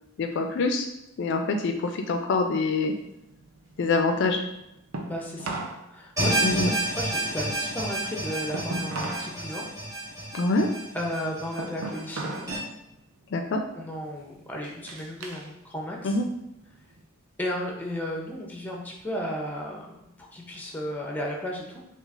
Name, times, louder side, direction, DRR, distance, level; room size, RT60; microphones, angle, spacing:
voice 1, 0.2-0.9 1.2-2.9 3.8-4.4 6.2-6.7 10.3-10.7 13.3-13.6 16.0-16.3, left 3 dB, 55° left, 5 dB, 0.3 m, -25 dB
sound 1, 2.7-5.8 6.1-9.3 9.7-12.6 12.9-13.3 13.9-15.5 15.9-17.0, right 2 dB, 80° right, 0.6 m, -38 dB
voice 2, 5.0-5.6 5.9-9.7 10.9-12.5 13.7-16.2 17.4-19.9 20.3-21.8, equal, 10° left, 0 dB, 0.6 m, -34 dB
sound 2, 6.2-12.6, right 1 dB, 15° right, 1.2 m, -30 dB
6.0 x 2.4 x 2.5 m, 0.85 s
head